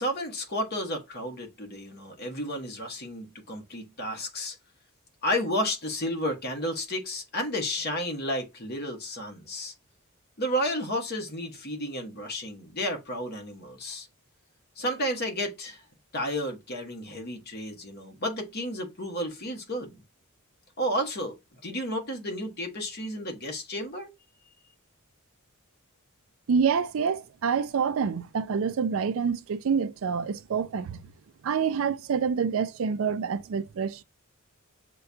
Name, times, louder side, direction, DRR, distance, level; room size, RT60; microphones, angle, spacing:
voice 1, 0.0-4.6 5.2-9.7 10.4-14.1 14.8-15.8 16.1-20.0 20.8-24.1, equal, 45° left, 1.2 m, -32 dB
voice 2, 26.5-31.0 31.4-34.0, right 6 dB, 65° right, 0.4 m, -27 dB
6.6 x 2.3 x 2.6 m
head